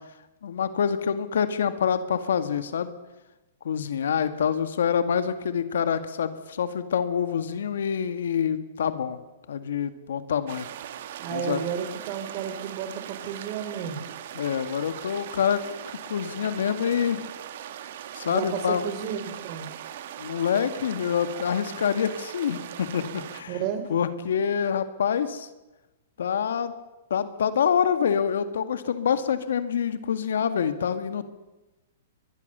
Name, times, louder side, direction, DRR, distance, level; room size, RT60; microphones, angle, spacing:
voice 1, 0.4-2.9 3.6-9.2 9.5-10.7 11.3-11.6 14.3-15.6 16.1-17.2 18.1-18.8 20.2-23.6 23.9-25.5 26.2-26.7 27.1-31.2, left 7 dB, 75° left, 11 dB, 1.9 m, -26 dB
sound 1, 10.5-23.4, right 10 dB, 60° right, 2.0 m, -40 dB
voice 2, 11.2-14.0 18.3-19.7 23.5-23.9, right 8 dB, 40° right, 9 dB, 3.8 m, -32 dB
24.0 x 20.5 x 6.8 m, 1.0 s
hypercardioid pair, 135°, 0 cm